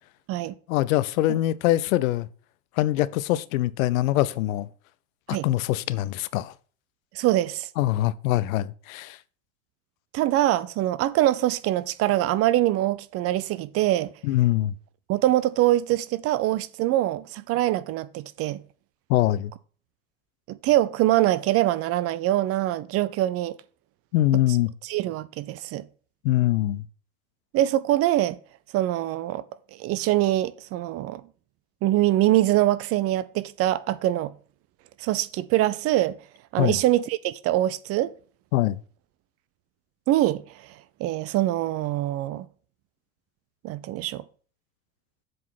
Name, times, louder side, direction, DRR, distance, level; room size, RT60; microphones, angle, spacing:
voice 1, 0.7-2.3 2.8-4.7 5.3-6.5 7.8-9.2 14.2-14.7 19.1-19.5 24.1-24.7 26.2-26.8 36.6-36.8 38.5-38.8, left 15 dB, 70° left, 0.5 m, -23 dB
voice 2, 7.1-7.7 10.1-14.1 15.1-18.6 20.5-23.6 24.8-25.9 27.5-28.4 28.7-29.4 29.8-31.2 31.8-34.3 35.0-36.2 36.5-38.1 40.1-40.4 41.0-42.5 43.6-44.2, right 14 dB, 35° right, 0.4 m, -24 dB
7.6 x 3.8 x 5.7 m
hypercardioid pair, 80°, 43 cm